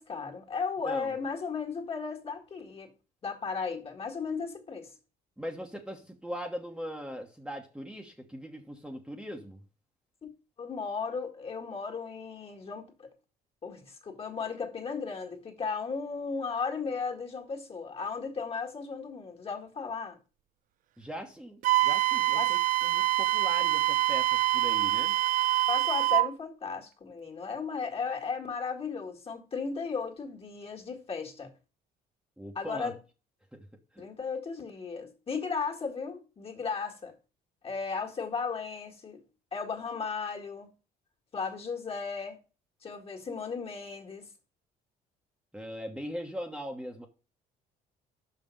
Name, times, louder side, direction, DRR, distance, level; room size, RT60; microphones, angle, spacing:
voice 1, 0.0-2.9 3.2-4.9 10.2-10.3 10.6-13.1 13.6-20.2 22.3-22.6 25.7-31.5 32.6-33.0 34.0-37.1 37.6-39.2 39.5-40.7 41.3-42.4 42.8-44.2, left 5 dB, 35° left, 1.9 m, -35 dB
voice 2, 0.8-1.2 5.4-9.6 21.0-25.2 32.4-32.9 33.5-33.6 33.9-34.1 45.5-47.1, equal, 5° right, 1.2 m, -40 dB
Wind instrument woodwind instrument, 21.6-26.3, right 15 dB, 55° right, 0.4 m, -25 dB
5.8 x 5.7 x 5.3 m
cardioid pair, 110°, 17 cm